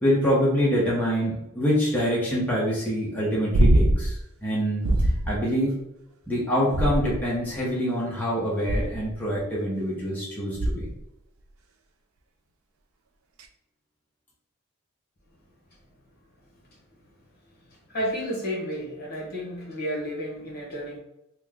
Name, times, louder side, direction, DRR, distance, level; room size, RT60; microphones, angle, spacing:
voice 1, 0.0-5.8 6.3-10.9, equal, 10° left, -7 dB, 0.8 m, -25 dB
sound 1, 3.5-4.2 4.8-5.4 6.7-7.4 8.6-9.1 10.6-11.0 13.4-13.5, right 1 dB, 75° right, 0.4 m, -22 dB
voice 2, 17.9-21.0, equal, 50° left, -3 dB, 1.2 m, -31 dB
3.1 x 2.1 x 3.6 m, 0.84 s
head